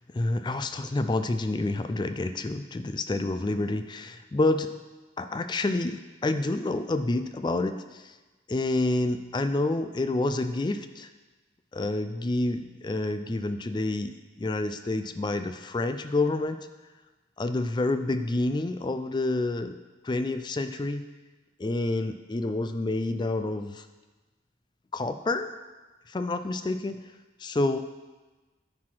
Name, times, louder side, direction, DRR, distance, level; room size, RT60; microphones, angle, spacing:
voice 1, 0.1-4.7 5.2-8.2 8.5-11.1 11.7-16.6 17.4-19.8 20.0-21.0 21.6-23.9 24.9-25.5 26.1-27.1 27.4-27.8, left 2 dB, 25° left, 10 dB, 0.3 m, -28 dB
9.6 x 4.7 x 6.0 m, 1.2 s
head